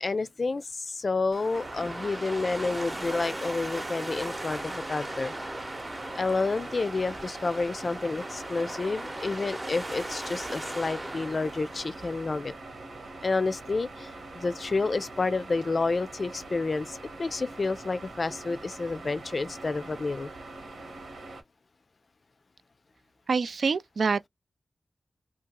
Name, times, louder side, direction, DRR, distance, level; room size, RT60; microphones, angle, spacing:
voice 1, 0.0-5.3 6.1-12.5 13.2-20.3, left 3 dB, 50° left, 0.4 m, -30 dB
sound 1, 1.3-12.5, right 1 dB, 20° right, 0.7 m, -38 dB
sound 2, 1.5-21.4, right 2 dB, 90° right, 1.3 m, -43 dB
voice 2, 23.3-24.3, right 5 dB, 75° right, 0.3 m, -26 dB
2.9 x 2.3 x 3.7 m
wide cardioid pair, 85°, 0 cm